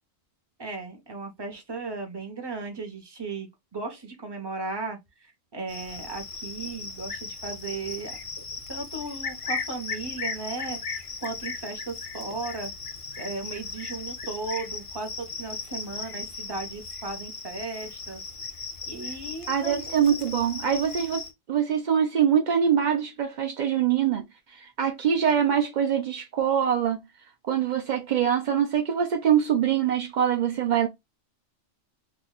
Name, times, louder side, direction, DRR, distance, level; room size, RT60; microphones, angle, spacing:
voice 1, 0.6-8.2 8.7-12.7 13.2-18.2 18.9-20.0, right 3 dB, 25° right, 0.7 m, -36 dB
Cricket, 5.7-21.3, left 4 dB, 55° left, 0.3 m, -37 dB
voice 2, 19.5-21.2 21.5-24.2 24.5-27.0 27.5-30.9, right 8 dB, 75° right, 0.4 m, -24 dB
2.9 x 2.2 x 3.8 m
omnidirectional pair, 1.4 m